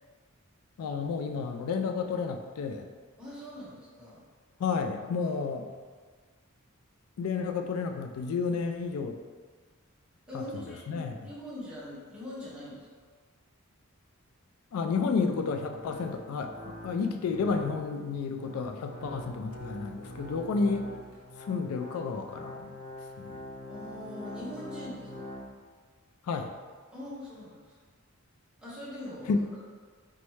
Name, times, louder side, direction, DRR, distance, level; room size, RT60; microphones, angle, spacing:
voice 1, 0.8-2.9 4.6-5.7 7.2-9.2 10.3-11.1 14.7-20.9 21.5-22.7 23.2-23.4 26.2-26.5 29.3-29.4, left 5 dB, 90° left, 6 dB, 0.3 m, -31 dB
voice 2, 3.2-4.2 5.2-5.3 10.3-12.9 23.7-25.3 26.9-27.8 28.6-29.3, left 1 dB, 5° right, -9 dB, 1.3 m, -42 dB
sound 1, 15.2-25.5, equal, 70° left, 1.0 m, -44 dB
4.4 x 3.1 x 3.1 m, 1.5 s
head